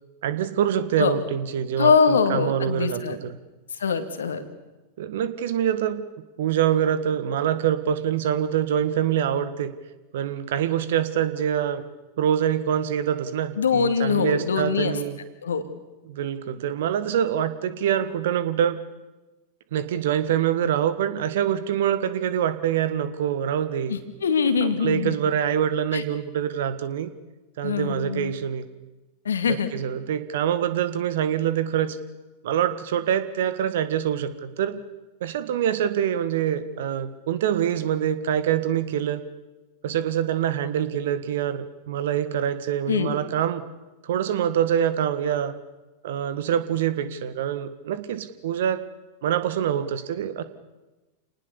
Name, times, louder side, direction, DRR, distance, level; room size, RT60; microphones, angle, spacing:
voice 1, 0.2-3.3 5.0-6.0 6.4-9.7 10.1-11.8 12.2-15.2 16.1-18.8 19.7-24.0 24.6-27.1 27.6-28.7 29.5-32.0 32.4-34.8 35.2-39.2 39.8-43.6 44.0-45.6 46.0-48.8 49.2-50.4, right 9 dB, 55° right, 13 dB, 1.7 m, -25 dB
voice 2, 1.8-3.2 3.7-4.4 13.6-15.0 15.4-15.6 23.9-25.2 25.9-26.0 27.6-28.3 29.2-29.7 42.9-43.1, left 5 dB, 70° left, 9 dB, 2.3 m, -23 dB
28.5 x 19.5 x 7.0 m, 1.1 s
figure-of-eight pair, 90°, 0 cm